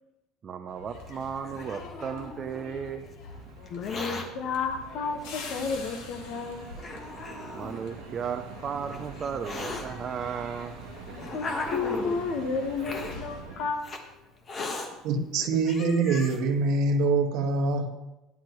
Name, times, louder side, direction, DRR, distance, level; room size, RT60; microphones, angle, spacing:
voice 1, 0.4-3.0 7.5-10.7 11.1-11.2, right 7 dB, 25° right, 6 dB, 0.6 m, -35 dB
sound 1, 0.7-14.7 15.0-15.3, left 3 dB, 75° left, 2.4 m, -46 dB
Hiss, 1.1-2.7 3.7-4.3 5.2-5.3 6.1-6.2 6.8-7.8 8.6-9.8 10.7-12.2 12.8-13.2 13.8-14.0 14.5-14.9 15.4-15.5 15.6-16.4, left 3 dB, 25° left, 1.3 m, -37 dB
sound 2, 3.3-13.7, right 7 dB, 85° right, 1.1 m, -46 dB
voice 2, 3.7-6.9 11.3-11.4 11.7-13.9 14.6-14.7, left 4 dB, 45° left, 6 dB, 1.4 m, -32 dB
voice 3, 15.0-17.9, right 3 dB, 60° right, 2 dB, 1.8 m, -24 dB
17.5 x 11.0 x 3.1 m, 0.99 s
cardioid pair, 175°, 0 cm